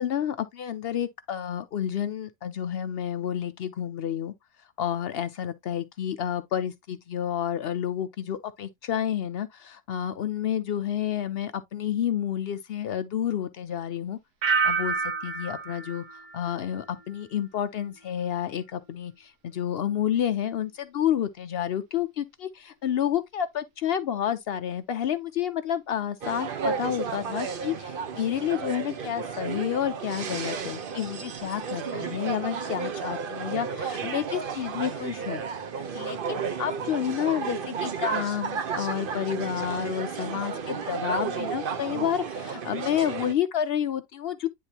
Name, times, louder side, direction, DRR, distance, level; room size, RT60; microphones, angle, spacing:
voice 1, 0.0-4.3 4.8-14.2 14.6-35.4 35.8-44.5, left 10 dB, 90° left, 0.5 m, -30 dB
sound 1, 14.4-17.3 17.6-18.1, right 5 dB, 75° right, 1.4 m, -30 dB
sound 2, 26.2-43.3, right 6 dB, 50° right, 0.7 m, -33 dB
9.8 x 3.6 x 2.8 m
omnidirectional pair, 1.7 m